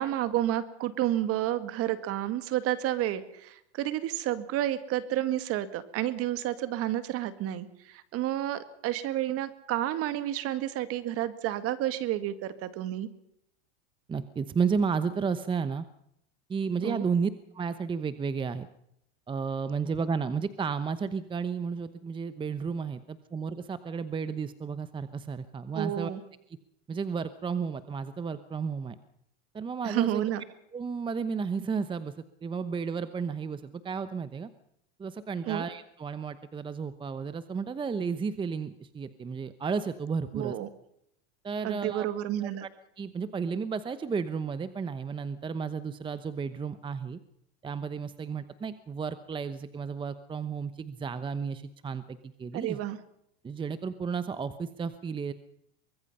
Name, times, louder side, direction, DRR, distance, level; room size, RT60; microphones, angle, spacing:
voice 1, 0.0-13.1 16.8-17.0 25.7-26.2 29.8-30.4 35.5-35.6 40.3-40.7 41.6-42.7 52.5-53.0, right 13 dB, 45° right, 12 dB, 2.1 m, -30 dB
voice 2, 14.1-15.8 16.5-18.7 19.3-26.1 26.9-29.0 29.5-30.2 30.7-32.1 32.4-34.5 35.0-40.6 41.4-42.1 42.4-42.7 43.0-47.2 47.6-52.8 53.4-55.3, right 5 dB, 15° right, 13 dB, 0.9 m, -32 dB
24.0 x 20.5 x 5.6 m, 0.75 s
supercardioid pair, 125°, 33 cm